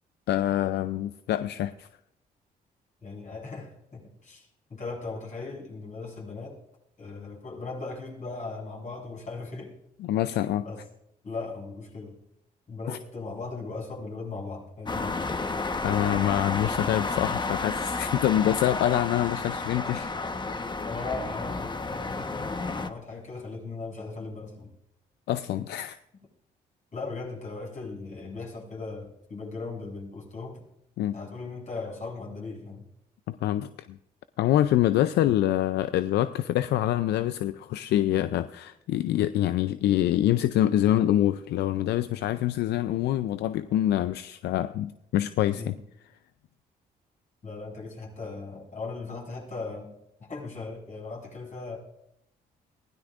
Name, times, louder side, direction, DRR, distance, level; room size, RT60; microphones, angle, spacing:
voice 1, 0.3-1.9 10.0-10.6 12.9-13.0 15.8-20.1 25.3-26.0 31.0-31.2 33.3-34.0 34.4-45.7, left 12 dB, 75° left, 12 dB, 0.5 m, -25 dB
voice 2, 3.0-6.6 7.0-9.7 10.2-10.4 10.6-10.8 11.2-12.2 12.7-15.1 20.9-21.8 22.1-24.7 25.6-25.7 26.9-30.6 31.1-32.8 45.6-45.8 47.4-49.9 50.2-51.8, left 3 dB, 45° left, -2 dB, 7.2 m, -38 dB
sound 1, 14.9-22.9, left 3 dB, 25° left, 1.1 m, -31 dB
21.0 x 16.0 x 2.5 m, 0.83 s
supercardioid pair, 65°, 18 cm